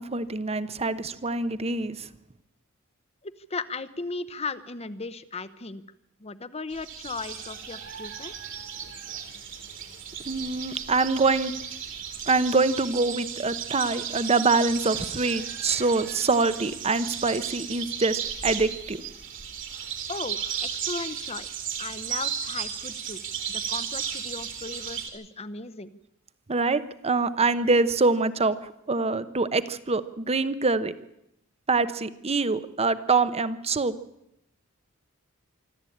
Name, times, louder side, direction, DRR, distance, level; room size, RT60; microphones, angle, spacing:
voice 1, 0.0-2.1 10.3-11.5 12.3-19.0 26.5-30.9 31.7-33.9, right 3 dB, 30° right, 14 dB, 0.9 m, -25 dB
voice 2, 3.2-5.8 6.2-8.3 20.1-21.5 21.8-23.2 23.5-25.9, left 3 dB, 30° left, 13 dB, 0.9 m, -36 dB
sound 1, 6.7-25.1, right 8 dB, 60° right, 3.4 m, -35 dB
25.0 x 13.0 x 8.6 m, 0.83 s
head